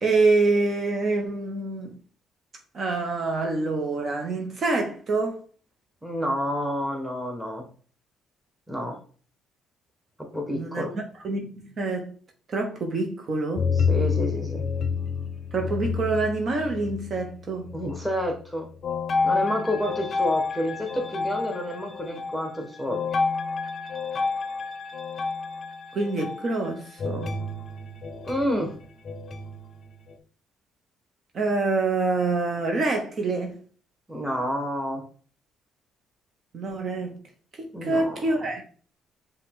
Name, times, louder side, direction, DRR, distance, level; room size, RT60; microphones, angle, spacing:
voice 1, 0.0-2.0 2.7-5.4 10.5-12.1 12.5-13.7 15.5-17.7 25.9-27.4 31.3-33.6 36.5-37.1 37.6-38.6, right 3 dB, 50° right, 0.8 m, -26 dB
voice 2, 6.0-7.7 8.7-9.0 10.2-11.0 13.9-14.6 17.7-18.7 19.2-23.0 28.3-28.7 34.1-35.1 37.7-38.2, equal, ahead, 1.2 m, -29 dB
sound 1, 13.6-17.4 17.6-18.3 18.8-30.2, left 5 dB, 50° left, 0.5 m, -29 dB
5.5 x 2.3 x 3.6 m
cardioid pair, 90°, 0 cm